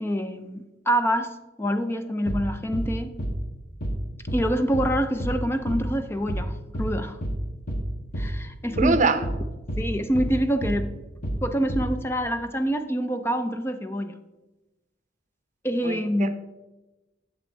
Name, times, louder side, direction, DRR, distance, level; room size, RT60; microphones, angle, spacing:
voice 1, 0.0-3.1 4.3-7.2 8.2-9.1 9.8-10.9 11.4-14.1 15.6-16.3, equal, 15° left, 8 dB, 0.5 m, -26 dB
sound 1, 2.3-2.5 2.7-2.9 3.2-3.4 3.8-4.0 4.3-4.5 4.7-4.9 5.2-5.4 5.7-5.9 6.3-6.5 6.7-6.9 7.2-7.4 7.7-7.9 8.1-8.3 8.8-9.0 9.2-9.4 9.7-9.9 10.1-10.3 10.6-10.8 11.2-11.4 11.7-11.9, equal, 50° left, 1.5 m, -29 dB
voice 2, 8.8-9.2 15.8-16.3, right 3 dB, 40° right, 10 dB, 0.7 m, -23 dB
10.5 x 7.3 x 4.5 m, 1.1 s
head